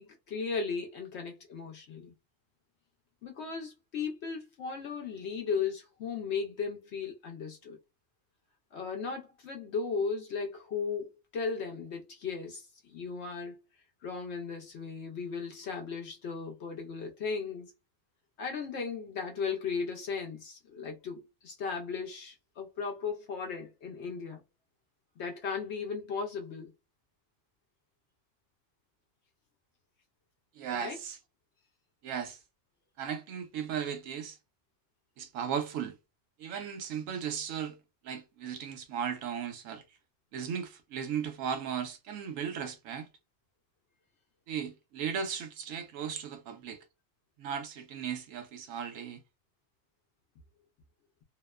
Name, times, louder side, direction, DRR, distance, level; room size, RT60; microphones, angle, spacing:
voice 1, 0.0-2.1 3.2-7.8 8.7-13.6 14.0-17.7 18.4-24.4 25.2-26.7 30.7-31.0, left 5 dB, 65° left, 0.8 m, -36 dB
voice 2, 30.6-31.2 32.0-32.4 33.0-34.4 35.2-35.9 36.4-37.8 38.0-39.8 40.3-43.1 44.5-46.8 47.4-49.2, right 7 dB, 85° right, 1.0 m, -36 dB
2.8 x 2.1 x 2.2 m
omnidirectional pair, 1.3 m